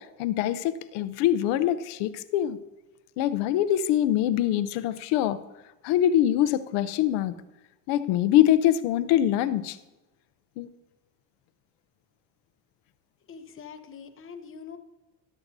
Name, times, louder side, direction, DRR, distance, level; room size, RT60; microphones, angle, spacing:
voice 1, 0.0-2.6 3.2-5.4 5.8-7.3 7.9-9.8 10.6-10.7, left 12 dB, 85° left, 14 dB, 0.7 m, -24 dB
voice 2, 13.3-14.8, left 6 dB, 30° left, 8 dB, 0.9 m, -43 dB
13.5 x 11.0 x 2.7 m, 1.1 s
cardioid pair, 125°, 43 cm